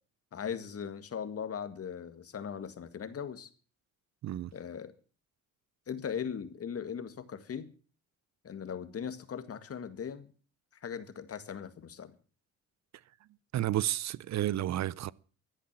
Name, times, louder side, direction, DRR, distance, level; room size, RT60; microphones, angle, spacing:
voice 1, 0.3-3.5 4.5-4.9 5.9-7.7 8.4-10.3 10.8-12.1, left 7 dB, 50° left, 1.9 m, -39 dB
voice 2, 4.2-4.5 13.5-15.1, right 13 dB, 60° right, 0.6 m, -31 dB
15.0 x 10.0 x 7.4 m
cardioid pair, 90°, 30 cm